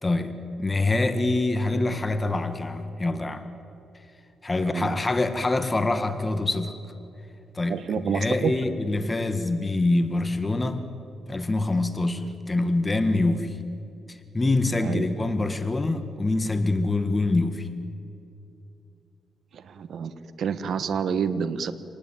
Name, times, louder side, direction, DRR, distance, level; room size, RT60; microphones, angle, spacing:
voice 1, 0.0-3.5 4.4-6.7 7.5-10.8 11.3-13.6 14.1-17.7, left 2 dB, 20° left, 9 dB, 1.6 m, -25 dB
voice 2, 7.7-8.5 14.8-15.0 19.7-21.7, right 7 dB, 65° right, 12 dB, 1.4 m, -28 dB
27.0 x 19.5 x 9.2 m, 2.8 s
cardioid pair, 95°, 0 cm